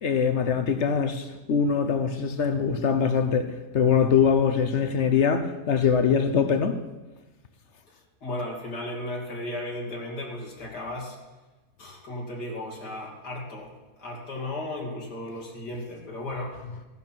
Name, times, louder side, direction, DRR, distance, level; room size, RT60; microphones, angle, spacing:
voice 1, 0.0-6.8, left 6 dB, 55° left, 0.9 m, -23 dB
voice 2, 8.2-11.2 11.8-13.7 14.0-16.6, left 1 dB, 85° left, 3.0 m, -35 dB
15.5 x 11.0 x 4.6 m
omnidirectional pair, 1.7 m